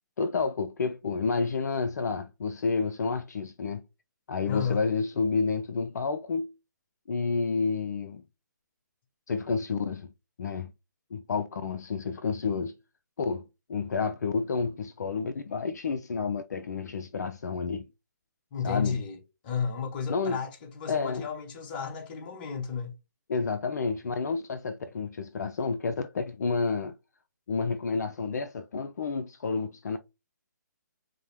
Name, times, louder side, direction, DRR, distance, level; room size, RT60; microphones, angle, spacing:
voice 1, 0.2-3.8 4.3-6.5 7.1-8.2 9.3-10.1 10.4-10.7 11.1-12.7 13.2-13.4 13.7-17.9 18.6-19.0 20.1-20.4 20.9-21.3 23.3-26.9 27.5-30.0, left 4 dB, 60° left, 0.4 m, -30 dB
voice 2, 4.5-4.8 18.5-19.2 19.4-23.0, left 6 dB, 30° left, 0.7 m, -33 dB
4.7 x 2.0 x 2.9 m
figure-of-eight pair, 140°, 10 cm